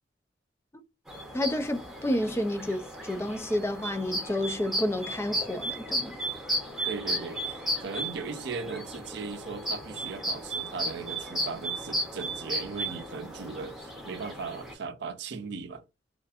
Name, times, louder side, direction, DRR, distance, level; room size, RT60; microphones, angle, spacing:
sound 1, 1.1-14.7, right 1 dB, ahead, 0.8 m, -35 dB
voice 1, 1.3-6.1, left 1 dB, 15° left, 0.4 m, -30 dB
voice 2, 6.8-7.4 7.8-15.8, right 4 dB, 65° right, 0.5 m, -38 dB
2.5 x 2.4 x 2.4 m
head